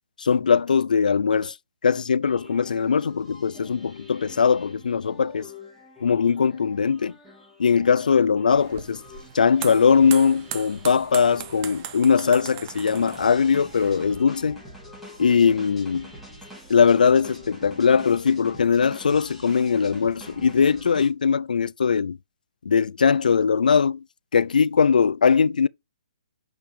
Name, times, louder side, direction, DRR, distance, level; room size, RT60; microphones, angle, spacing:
voice 1, 0.2-1.5 1.8-5.5 6.0-7.1 7.6-9.0 9.3-14.6 15.2-16.1 16.7-22.2 22.7-24.0 24.3-25.7, left 6 dB, 85° left, 0.4 m, -20 dB
sound 1, 2.2-21.1, left 1 dB, 5° right, 2.6 m, -46 dB
sound 2, 8.5-14.2, right 10 dB, 25° right, 0.8 m, -39 dB
6.6 x 5.9 x 3.3 m
hypercardioid pair, 165°, 4 cm